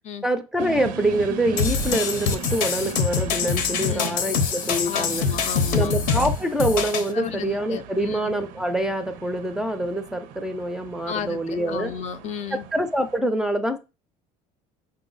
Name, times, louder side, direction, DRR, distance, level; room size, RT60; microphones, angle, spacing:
voice 1, 0.2-5.2 5.7-11.9 12.5-13.8, right 1 dB, 5° right, 0.4 m, -25 dB
sound 1, 0.6-13.2, right 8 dB, 80° right, 0.5 m, -38 dB
sound 2, 1.6-7.1, left 6 dB, 80° left, 0.8 m, -24 dB
voice 2, 3.8-4.2 4.8-6.0 7.1-8.2 11.1-12.7, left 8 dB, 55° left, 0.5 m, -33 dB
5.3 x 2.0 x 3.8 m
cardioid pair, 115°, 14 cm